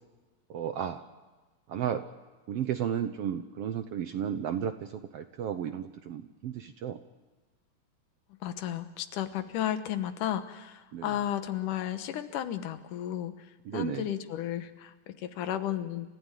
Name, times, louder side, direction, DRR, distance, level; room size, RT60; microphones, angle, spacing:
voice 1, 0.5-1.0 1.7-2.0 2.5-7.0 10.9-11.1 13.7-14.1, right 9 dB, 70° right, 9 dB, 1.5 m, -33 dB
voice 2, 8.4-13.5 13.7-16.1, left 11 dB, 80° left, 10 dB, 2.7 m, -33 dB
28.5 x 15.0 x 9.1 m, 1.2 s
omnidirectional pair, 3.6 m